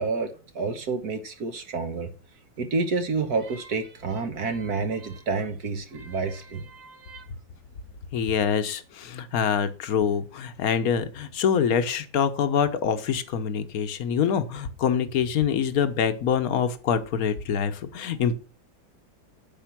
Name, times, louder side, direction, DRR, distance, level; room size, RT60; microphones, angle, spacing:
voice 1, 0.0-2.1 2.6-7.2, right 4 dB, 55° right, 8 dB, 1.6 m, -29 dB
voice 2, 8.1-18.3, left 7 dB, 55° left, 10 dB, 1.4 m, -25 dB
9.0 x 8.1 x 6.1 m, 0.37 s
omnidirectional pair, 2.1 m